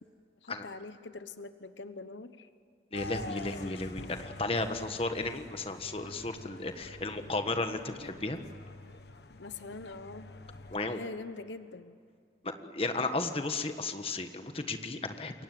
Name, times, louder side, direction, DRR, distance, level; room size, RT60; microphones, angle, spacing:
voice 1, 0.4-2.5 9.3-10.3 10.8-12.0, left 3 dB, 85° left, 11 dB, 1.1 m, -44 dB
sound 1, 2.9-10.8, left 2 dB, 65° left, 1.3 m, -46 dB
voice 2, 2.9-8.4 10.7-11.0 12.4-15.4, left 2 dB, 30° left, 7 dB, 1.5 m, -34 dB
28.5 x 23.0 x 7.8 m, 2.3 s
head